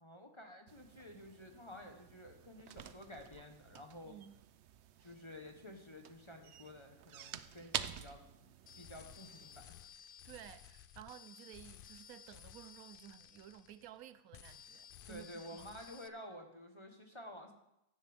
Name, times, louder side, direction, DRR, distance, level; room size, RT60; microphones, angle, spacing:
voice 1, 0.0-4.2 5.0-8.2 8.8-9.9 15.1-17.5, left 1 dB, 20° left, 1.0 m, -52 dB
sound 1, 0.7-9.6, right 10 dB, 65° right, 0.7 m, -49 dB
voice 2, 4.0-4.3 10.2-15.3 15.5-15.7, right 11 dB, 85° right, 1.1 m, -54 dB
sound 2, 8.7-14.0 14.3-16.1, left 9 dB, 70° left, 0.5 m, -56 dB
15.5 x 10.5 x 3.5 m
omnidirectional pair, 1.5 m